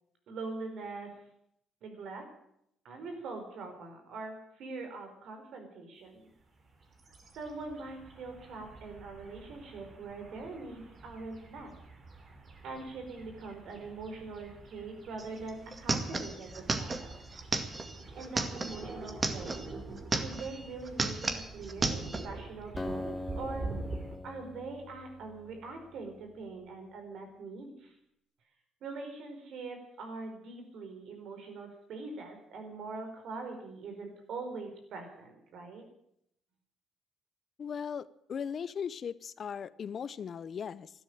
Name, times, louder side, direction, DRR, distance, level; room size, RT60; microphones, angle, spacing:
voice 1, 0.3-1.1 1.8-2.2 2.8-6.3 7.3-11.7 12.6-17.2 18.1-19.6 20.1-23.7 24.2-27.9 28.8-35.8, right 3 dB, 70° right, 5 dB, 4.7 m, -43 dB
sound 1, 6.4-24.2, right 3 dB, 45° right, 3.6 m, -46 dB
sound 2, 15.2-15.3 15.5-19.7 20.0-20.6 20.9-22.3, right 3 dB, 30° right, 2.1 m, -33 dB
Acoustic guitar, 22.8-26.3, left 2 dB, 20° left, 1.7 m, -42 dB
voice 2, 37.6-40.9, left 7 dB, 50° left, 18 dB, 0.7 m, -38 dB
12.5 x 12.5 x 9.2 m, 0.75 s
supercardioid pair, 65°, 0 cm